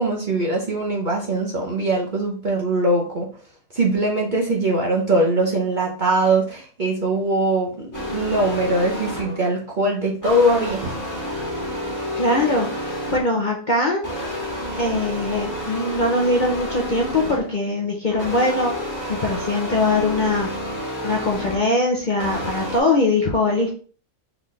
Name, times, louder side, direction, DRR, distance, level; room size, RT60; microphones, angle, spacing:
voice 1, 0.0-3.3 3.7-10.9, right 1 dB, 40° right, -2 dB, 0.8 m, -21 dB
sound 1, 7.9-9.5 10.2-13.5 14.0-17.6 18.1-21.7 22.2-22.8, equal, 10° left, 1.6 m, -29 dB
voice 2, 12.2-14.0 14.8-18.7 19.1-23.7, left 2 dB, 40° left, -1 dB, 0.7 m, -22 dB
4.0 x 3.6 x 3.1 m, 0.41 s
omnidirectional pair, 1.5 m